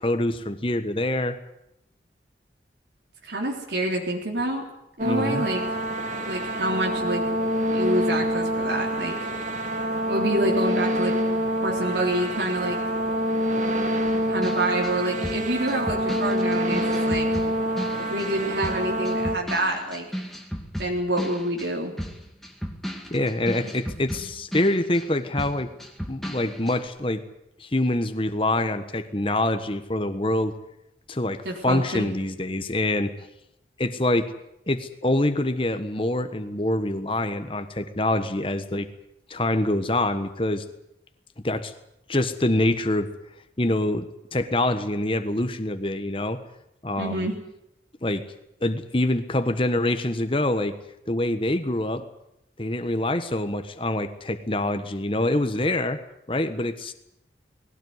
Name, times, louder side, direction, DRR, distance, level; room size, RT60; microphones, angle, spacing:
voice 1, 0.0-1.4 5.0-5.5 23.1-25.7 26.1-27.2 27.6-30.5 31.1-33.1 33.8-34.3 34.7-38.9 39.3-40.6 41.4-41.7 42.1-43.1 43.6-46.4 46.8-47.3 48.0-48.2 48.6-50.7 51.1-52.0 52.6-56.0 56.3-56.9, left 1 dB, 30° left, 9 dB, 1.3 m, -25 dB
voice 2, 3.2-4.6 5.0-5.6 6.2-7.2 7.7-9.2 10.1-11.1 11.6-12.8 14.3-17.3 17.9-20.1 20.8-21.9 31.5-32.1 47.0-47.4, right 1 dB, 70° right, 0 dB, 3.6 m, -27 dB
sound 1, 5.0-19.4, equal, 45° right, 2.5 m, -26 dB
sound 2, 14.1-18.4 18.6-25.1 25.4-26.8, equal, ahead, 2.3 m, -35 dB
19.5 x 17.5 x 9.6 m, 0.84 s
head